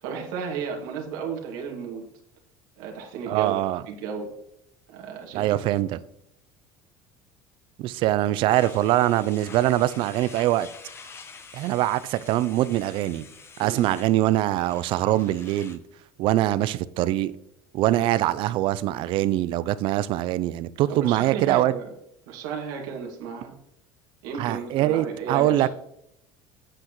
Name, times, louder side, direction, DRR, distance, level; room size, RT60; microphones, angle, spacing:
voice 1, 0.0-2.0 2.8-3.6 3.9-4.3 4.9-5.7 13.6-13.9 17.9-18.1 20.9-21.9 22.3-23.5 24.2-25.7, right 6 dB, 90° right, 2.1 m, -34 dB
voice 2, 3.3-3.8 5.3-6.0 7.8-10.7 11.5-13.3 13.6-15.8 16.2-17.3 17.7-21.7 24.4-25.7, right 14 dB, 55° right, 0.4 m, -23 dB
sound 1, 8.5-15.8, left 5 dB, 25° left, 0.7 m, -47 dB
8.8 x 7.8 x 3.1 m
cardioid pair, 140°, 10 cm